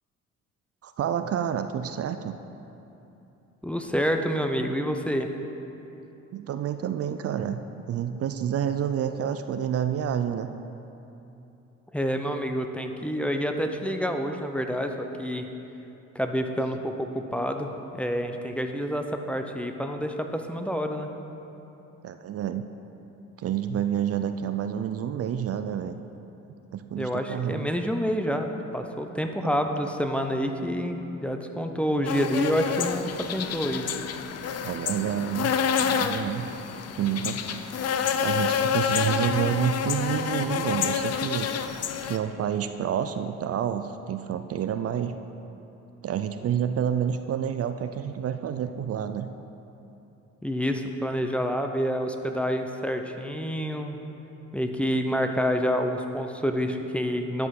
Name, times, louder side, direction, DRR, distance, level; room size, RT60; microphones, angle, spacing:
voice 1, 0.8-2.4 6.3-10.5 22.0-22.6 23.4-25.9 26.7-27.7 29.4-29.5 34.6-35.5 35.8-36.5 37.0-37.6 38.2-41.7 42.0-45.2 46.0-49.3, right 9 dB, 50° right, 9 dB, 0.4 m, -29 dB
voice 2, 3.6-5.3 11.9-15.4 16.1-21.1 27.0-33.9 50.4-54.0 54.5-57.5, equal, 5° left, 4 dB, 0.7 m, -28 dB
sound 1, 32.1-42.2, left 7 dB, 55° left, 0.6 m, -28 dB
11.0 x 5.4 x 6.0 m, 2.9 s
cardioid pair, 90°, 30 cm